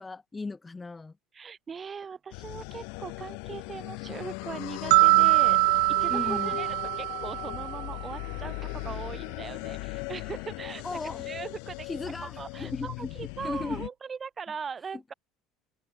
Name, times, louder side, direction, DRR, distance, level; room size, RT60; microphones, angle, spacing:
voice 1, 0.0-1.2 6.1-6.6 10.8-11.3 11.8-13.1 13.4-13.8, left 3 dB, 10° left, 5.5 m, -36 dB
voice 2, 1.3-11.0 11.2-11.9 12.4-15.1, right 6 dB, 20° right, 2.4 m, -40 dB
sound 1, 2.3-13.9, left 37 dB, 75° left, 6.0 m, -38 dB
sound 2, 4.9-8.0, right 31 dB, 90° right, 0.4 m, -23 dB
open air
cardioid pair, 155°, 0 cm